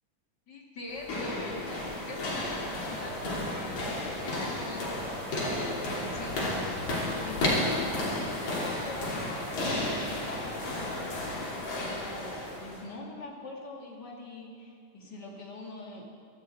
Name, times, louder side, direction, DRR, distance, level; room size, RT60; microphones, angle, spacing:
voice 1, 0.5-16.1, left 2 dB, 35° left, -1 dB, 2.5 m, -43 dB
sound 1, 0.9-12.8, left 1 dB, 65° left, 4.3 m, -32 dB
24.5 x 11.0 x 4.6 m, 2.3 s
omnidirectional pair, 3.4 m